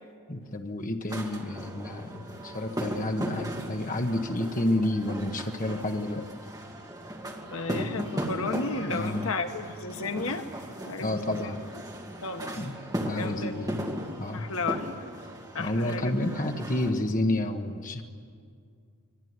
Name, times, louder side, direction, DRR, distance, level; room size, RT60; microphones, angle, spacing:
voice 1, 0.3-6.3 8.8-9.3 11.0-11.6 12.5-12.8 13.0-13.8 14.2-14.5 15.6-18.0, left 1 dB, 35° left, 4 dB, 1.4 m, -30 dB
sound 1, 1.1-16.9, equal, 15° right, 2.2 m, -37 dB
voice 2, 7.5-10.4 10.8-11.6 12.2-12.6 13.2-13.6 14.3-14.9 15.5-16.1, left 3 dB, 65° left, 7 dB, 1.3 m, -33 dB
24.5 x 22.0 x 9.7 m, 2.2 s
head